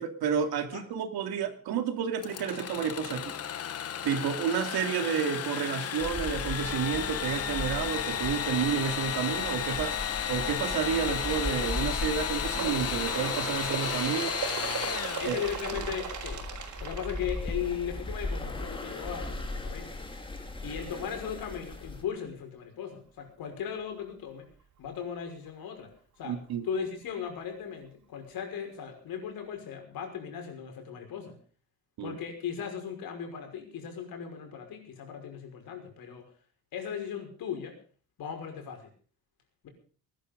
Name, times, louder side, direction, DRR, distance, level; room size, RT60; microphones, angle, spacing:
voice 1, 0.0-3.3 4.0-9.9 10.3-14.4 15.3-15.4 15.7-15.9 26.2-26.7 32.0-32.2, right 7 dB, 80° right, 7 dB, 2.7 m, -30 dB
Engine / Sawing, 2.2-15.9, left 9 dB, 40° left, 1.1 m, -33 dB
sound 1, 6.0-22.0, left 2 dB, 15° left, 2.2 m, -39 dB
Bird, 12.5-17.9 18.8-18.9 19.3-19.4 20.3-20.4 21.3-21.4 22.3-22.4, right 7 dB, 50° right, 4.5 m, -37 dB
voice 2, 15.2-16.4 16.8-19.9 20.6-24.5 24.8-25.9 26.2-26.4 26.6-31.4 32.0-36.2 36.7-37.7 38.2-38.9 39.6-39.7, left 8 dB, 70° left, 4 dB, 5.8 m, -37 dB
19.5 x 12.5 x 5.3 m, 0.42 s
cardioid pair, 165°, 37 cm